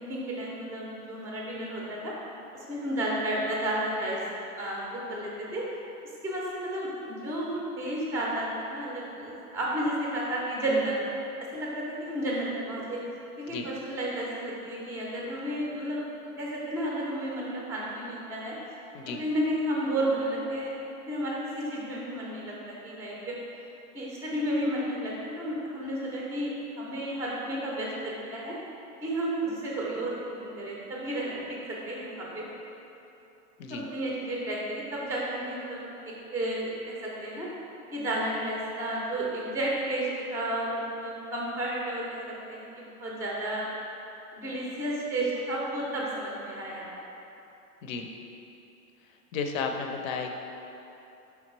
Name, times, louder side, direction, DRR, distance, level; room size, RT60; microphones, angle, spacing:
voice 1, 0.0-2.1 2.5-4.2 4.5-5.7 6.2-11.0 11.5-13.0 13.4-16.0 16.4-18.6 19.2-20.7 21.1-23.3 23.9-28.6 29.0-30.1 30.4-31.4 31.7-32.5 33.7-37.5 37.9-43.7 44.3-46.9, right 1 dB, 5° right, -4 dB, 0.4 m, -32 dB
voice 2, 49.3-50.3, left 5 dB, 60° left, 4 dB, 0.6 m, -33 dB
4.4 x 3.5 x 3.0 m, 2.9 s
hypercardioid pair, 115°, 45 cm